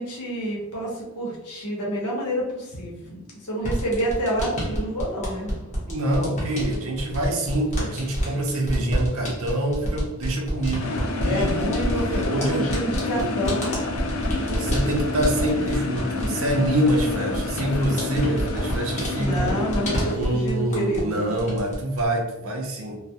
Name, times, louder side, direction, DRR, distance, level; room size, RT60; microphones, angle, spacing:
voice 1, 0.0-5.5 11.2-13.6 19.1-21.3, equal, 90° left, -3 dB, 0.8 m, -28 dB
sound 1, 3.6-21.1 21.4-22.1, equal, 30° left, 0.7 m, -29 dB
voice 2, 5.9-11.7 12.0-12.7 13.1-13.3 14.3-19.6 20.1-23.0, right 1 dB, 65° right, 1 dB, 0.5 m, -26 dB
sound 2, 10.8-20.1, left 3 dB, 65° left, 0.3 m, -29 dB
2.3 x 2.0 x 2.6 m, 0.94 s
head